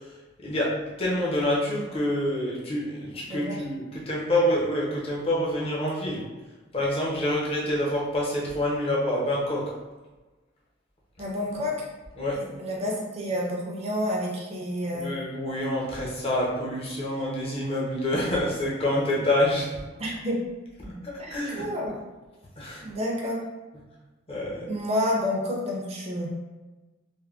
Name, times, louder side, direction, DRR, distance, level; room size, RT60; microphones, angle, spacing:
voice 1, 0.4-6.3 6.7-9.7 12.2-12.5 14.9-19.7 21.0-21.7 22.6-22.8 24.3-24.7, left 1 dB, 30° left, -4 dB, 0.6 m, -27 dB
voice 2, 11.2-11.8 12.4-15.1 20.0-20.4 20.8-21.9 22.8-23.4 24.7-26.3, left 1 dB, 35° right, -2 dB, 0.5 m, -29 dB
3.4 x 2.1 x 2.3 m, 1.2 s
head